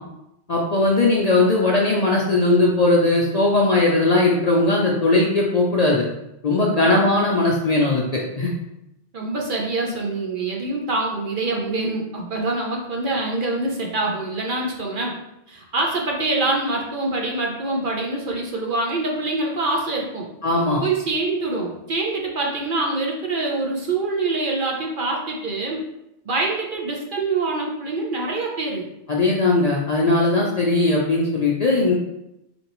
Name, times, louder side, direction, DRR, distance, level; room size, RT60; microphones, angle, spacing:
voice 1, 0.5-6.0 6.4-8.5 20.4-20.8 29.1-31.9, left 2 dB, 50° left, -2 dB, 0.5 m, -19 dB
voice 2, 6.8-7.1 9.1-15.2 15.5-20.3 20.8-25.8 26.3-28.8, right 2 dB, 55° right, -1 dB, 0.8 m, -25 dB
3.9 x 3.4 x 3.0 m, 0.86 s
omnidirectional pair, 1.2 m